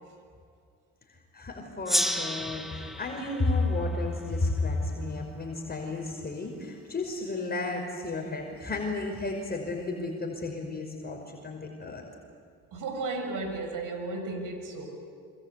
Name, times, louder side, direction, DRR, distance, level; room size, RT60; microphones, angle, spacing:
voice 1, 1.3-12.0, left 2 dB, 25° left, 1 dB, 5.4 m, -32 dB
Gong, 1.8-5.0, equal, ahead, 2.2 m, -32 dB
voice 2, 12.7-14.9, right 3 dB, 60° right, 5 dB, 7.3 m, -34 dB
27.5 x 25.5 x 8.4 m, 2.3 s
hypercardioid pair, 70°, 36 cm